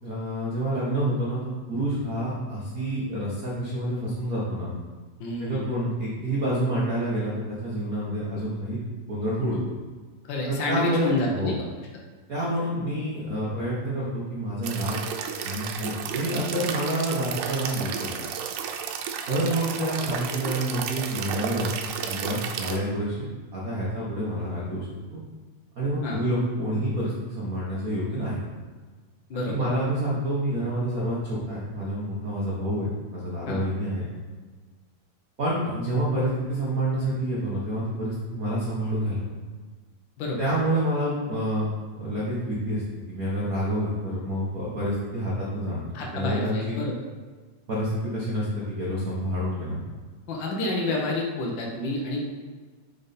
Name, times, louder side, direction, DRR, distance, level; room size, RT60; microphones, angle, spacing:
voice 1, 0.0-4.7 5.4-8.8 9.1-9.6 10.5-11.6 12.3-15.0 15.4-18.1 19.3-23.3 23.5-25.2 25.8-28.4 29.3-32.9 33.1-34.0 35.4-39.2 40.4-42.8 43.1-46.8 47.7-49.8, right 1 dB, 60° right, -7 dB, 0.9 m, -28 dB
voice 2, 5.2-5.6 10.3-11.5 26.0-26.2 29.3-29.7 33.5-33.6 40.2-40.4 45.9-46.9 50.3-52.2, left 2 dB, 65° left, -1 dB, 1.1 m, -28 dB
sound 1, 14.6-22.8, right 7 dB, 90° right, 2.1 m, -32 dB
6.8 x 5.4 x 4.3 m, 1.4 s
omnidirectional pair, 3.5 m